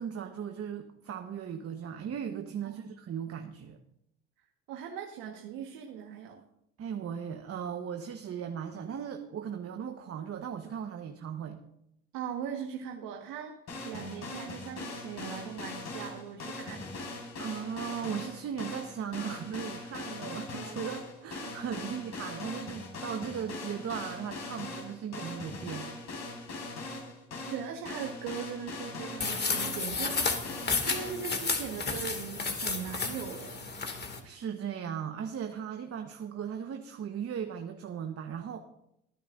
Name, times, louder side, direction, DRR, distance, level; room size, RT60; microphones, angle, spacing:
voice 1, 0.0-3.8 6.8-11.6 17.4-25.9 34.2-38.6, right 8 dB, 45° right, 6 dB, 1.3 m, -37 dB
voice 2, 4.7-6.4 12.1-13.5 13.9-16.9 27.5-30.5 30.8-33.6, right 8 dB, 70° right, 2 dB, 1.6 m, -40 dB
sound 1, 13.7-31.1, left 2 dB, 50° left, 5.3 m, -41 dB
sound 2, 29.2-34.2, left 4 dB, 30° left, 2.4 m, -32 dB
24.0 x 10.0 x 2.6 m, 0.78 s
hypercardioid pair, 65°, 34 cm